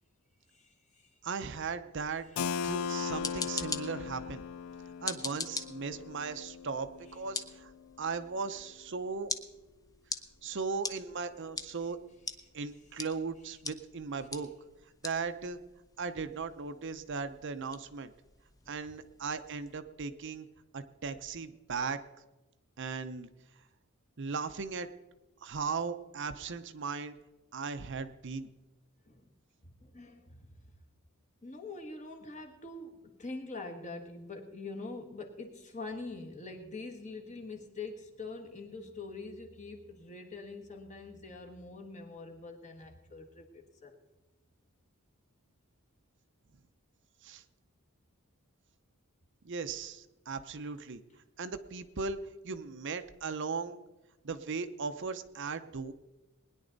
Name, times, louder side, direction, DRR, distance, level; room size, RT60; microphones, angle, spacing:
voice 1, 0.5-1.1 29.1-29.3 29.6-30.5 31.4-44.0, left 3 dB, 35° left, 3 dB, 1.6 m, -44 dB
voice 2, 1.2-2.3 2.6-4.4 5.0-7.7 8.0-9.3 10.4-12.0 12.5-14.5 15.0-15.6 16.0-18.1 18.7-20.5 20.7-22.0 22.8-23.3 24.2-24.9 25.4-27.1 27.5-28.5 47.2-47.4 49.4-51.0 51.4-53.8 54.2-55.9, right 5 dB, 55° right, 10 dB, 0.7 m, -37 dB
Keyboard (musical), 2.4-7.9, left 6 dB, 75° left, 0.4 m, -38 dB
sound 1, 2.9-19.8, left 4 dB, 15° left, 0.6 m, -44 dB
20.0 x 10.0 x 4.0 m, 1.1 s
head